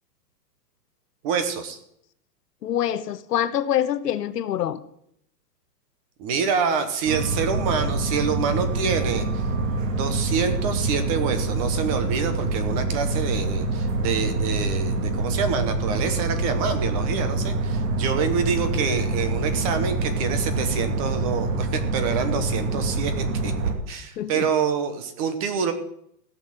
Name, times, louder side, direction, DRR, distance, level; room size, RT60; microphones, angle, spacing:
voice 1, 1.2-1.8 6.2-9.4 9.9-23.5 23.9-25.7, right 6 dB, 20° right, 9 dB, 0.9 m, -27 dB
voice 2, 2.6-4.8 24.2-24.5, left 10 dB, 75° left, 13 dB, 1.1 m, -25 dB
sound 1, 7.1-23.7, right 2 dB, 50° right, 2.5 m, -26 dB
16.0 x 6.5 x 7.6 m, 0.73 s
hypercardioid pair, 170°, 49 cm